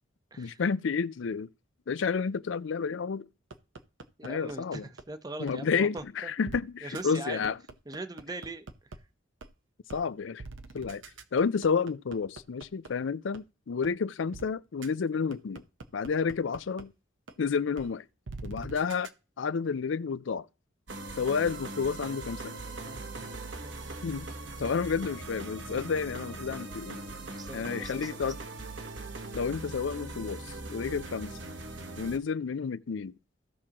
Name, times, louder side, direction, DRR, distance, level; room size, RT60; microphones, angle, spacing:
voice 1, 0.4-1.5 1.9-3.3 4.2-4.9 5.4-7.6 9.9-10.4 10.7-11.0 11.3-15.6 15.9-16.9 17.4-18.0 18.4-19.1 19.4-20.5 21.2-22.6 24.0-24.3 24.6-27.0 27.5-28.4 29.3-31.4 32.0-33.1, left 5 dB, 85° left, 0.5 m, -30 dB
sound 1, 3.5-5.0 5.5-5.6 6.0-6.1 6.5-6.6 6.9-7.0 7.4-9.0 9.4-9.5 9.9-10.0 10.4-12.9 13.3-13.4 13.8-13.9 14.3-14.5 14.8-14.9 15.3-16.8 17.3-17.4 17.8-17.9 18.3-19.1, right 3 dB, 85° right, 0.9 m, -43 dB
voice 2, 4.2-4.8 5.1-6.3 6.8-7.5 7.9-8.7 22.6-23.3 23.6-23.7 27.3-28.1, right 2 dB, 20° right, 0.7 m, -41 dB
sound 2, 20.9-32.2, right 2 dB, 70° right, 1.2 m, -40 dB
16.0 x 6.0 x 2.9 m
head